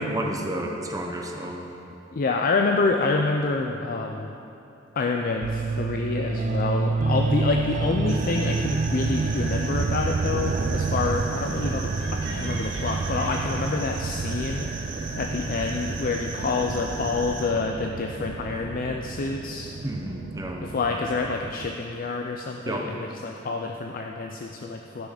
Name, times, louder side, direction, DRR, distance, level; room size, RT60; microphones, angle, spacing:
voice 1, 0.0-1.7 19.8-20.7 22.7-22.9, right 1 dB, 20° right, 1 dB, 0.9 m, -30 dB
voice 2, 2.1-4.3 5.0-19.8 20.6-25.1, left 3 dB, 45° left, 3 dB, 0.5 m, -28 dB
sound 1, 5.4-21.7, right 3 dB, 40° right, 0.3 m, -29 dB
sound 2, 8.1-17.5, right 2 dB, 65° right, 1.6 m, -37 dB
13.0 x 6.2 x 5.0 m, 2.9 s
head